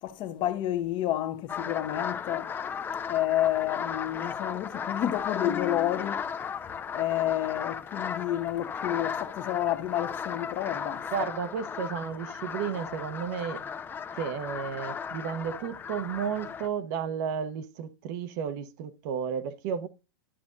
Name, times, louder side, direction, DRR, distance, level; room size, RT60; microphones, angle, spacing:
voice 1, 0.0-2.5 3.1-6.5 6.9-11.1, left 12 dB, 40° left, 1.0 m, -30 dB
sound 1, 1.5-16.7, left 7 dB, 15° left, 0.5 m, -36 dB
voice 2, 11.1-13.6 14.2-19.9, right 7 dB, 55° right, 0.9 m, -33 dB
11.5 x 7.0 x 2.5 m
supercardioid pair, 135°, 12 cm